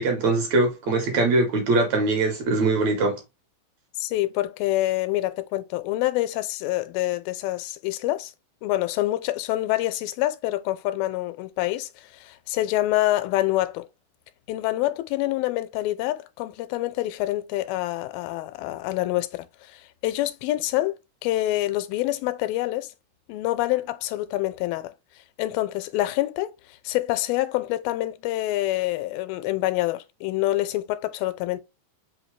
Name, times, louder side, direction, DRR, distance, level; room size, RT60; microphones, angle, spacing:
voice 1, 0.0-3.2, right 2 dB, 65° right, 2.0 m, -22 dB
voice 2, 4.0-8.3 8.6-13.9 14.5-20.9 21.2-22.9 23.3-24.9 25.4-31.6, left 16 dB, 90° left, 2.3 m, -26 dB
5.4 x 2.7 x 3.1 m
omnidirectional pair, 4.1 m